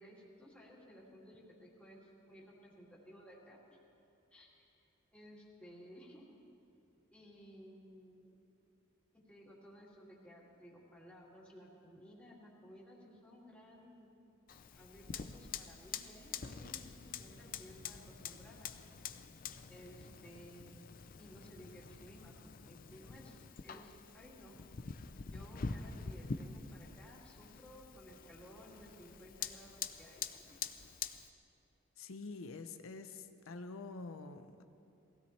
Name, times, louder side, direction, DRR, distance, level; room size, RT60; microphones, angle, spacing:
voice 1, 0.0-3.6 4.3-4.8 5.1-6.3 7.1-8.4 9.1-14.1 14.7-18.7 19.7-20.9 21.2-24.6 25.2-30.6, equal, 5° left, -5 dB, 2.5 m, -57 dB
Fire, 14.5-31.3, left 6 dB, 45° left, 0.5 m, -46 dB
voice 2, 32.0-34.6, left 3 dB, 80° left, 8 dB, 0.7 m, -47 dB
21.0 x 16.0 x 3.3 m, 2.8 s
head